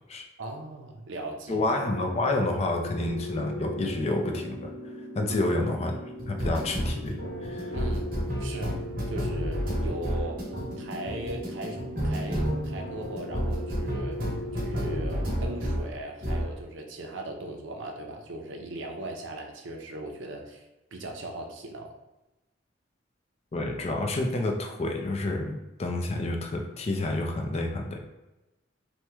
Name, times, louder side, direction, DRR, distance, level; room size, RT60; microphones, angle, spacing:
voice 1, 0.4-1.6 5.3-5.5 7.7-8.1 8.4-8.8 9.1-10.4 10.8-11.8 12.0-14.2 14.5-20.6 20.9-21.9, right 1 dB, 85° right, 2 dB, 0.5 m, -38 dB
voice 2, 1.5-4.7 5.1-6.0 6.3-7.7 23.5-28.0, left 2 dB, 35° left, 2 dB, 0.4 m, -29 dB
sound 1, 1.6-15.9 16.2-16.5, equal, 50° right, 1.0 m, -32 dB
2.9 x 2.1 x 3.4 m, 1.0 s
head